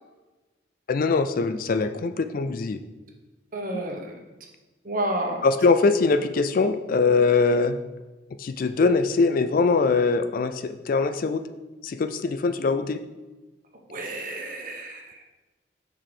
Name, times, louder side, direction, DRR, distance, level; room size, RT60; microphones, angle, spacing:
voice 1, 0.9-2.8 5.4-7.8 8.4-11.4 11.8-13.0, left 4 dB, 45° left, 10 dB, 0.3 m, -22 dB
voice 2, 3.5-4.1 4.8-5.4 13.9-15.0, right 1 dB, 45° right, 1 dB, 1.1 m, -30 dB
5.8 x 4.7 x 4.9 m, 1.1 s
head